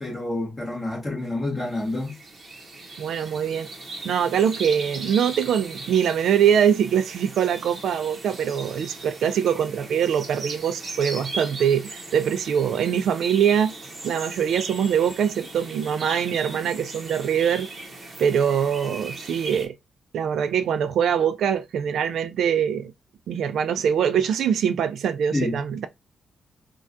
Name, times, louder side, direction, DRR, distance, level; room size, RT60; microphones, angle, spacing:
voice 1, 0.0-2.2 25.3-25.6, left 2 dB, 15° left, 1.3 m, -28 dB
sound 1, 1.6-19.7, right 2 dB, 30° right, 0.8 m, -38 dB
voice 2, 3.0-3.7 4.0-13.7 14.0-17.7 18.2-19.8 20.1-22.9 23.3-25.9, right 8 dB, 75° right, 0.3 m, -23 dB
3.4 x 2.3 x 2.5 m
wide cardioid pair, 160°, 0 cm